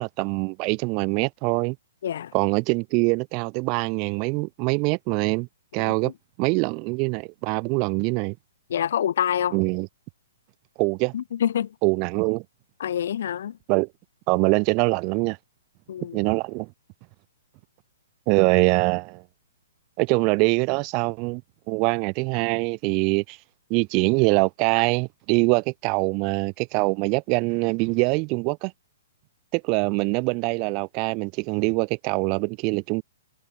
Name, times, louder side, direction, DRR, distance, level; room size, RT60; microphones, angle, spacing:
voice 1, 0.0-1.8 2.3-5.5 5.7-6.1 6.4-8.4 9.5-9.9 10.8-11.1 11.8-12.4 13.7-13.9 14.3-15.4 16.1-16.7 18.3-19.2 20.0-21.4 21.7-23.4 23.7-28.7 29.5-33.0, right 32 dB, 35° right, 0.9 m, -23 dB
voice 2, 2.0-2.3 5.8-6.1 8.7-9.6 11.1-11.7 12.8-13.6 15.9-16.2, left 9 dB, 60° left, 1.1 m, -26 dB
hypercardioid pair, 130°, 0 cm